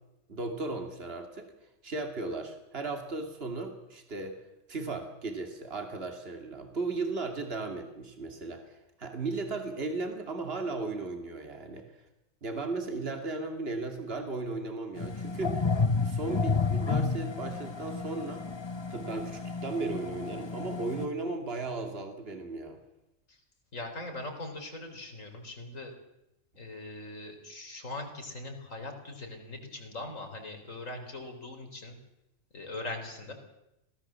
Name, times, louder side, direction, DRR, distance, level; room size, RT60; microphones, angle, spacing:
voice 1, 0.3-1.5 1.8-4.4 4.7-11.9 12.4-15.6 16.0-18.5 18.9-22.8, right 3 dB, 50° right, 5 dB, 2.8 m, -36 dB
sound 1, 15.0-21.1, left 4 dB, 25° left, 0.8 m, -31 dB
voice 2, 23.7-25.9 26.6-32.0 32.5-33.3, left 2 dB, 80° left, 4 dB, 4.4 m, -41 dB
26.5 x 17.5 x 7.5 m, 0.90 s
omnidirectional pair, 1.3 m